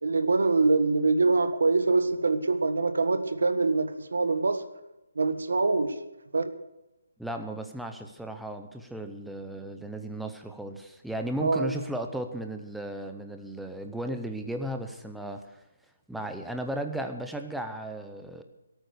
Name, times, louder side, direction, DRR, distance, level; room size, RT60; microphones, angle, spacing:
voice 1, 0.0-4.6 5.1-5.9 6.3-6.5 11.4-11.7, right 3 dB, 75° right, 10 dB, 1.6 m, -24 dB
voice 2, 7.2-15.6 16.1-18.4, right 1 dB, ahead, 5 dB, 0.6 m, -35 dB
17.5 x 9.0 x 6.7 m, 0.97 s
hypercardioid pair, 180°, 0 cm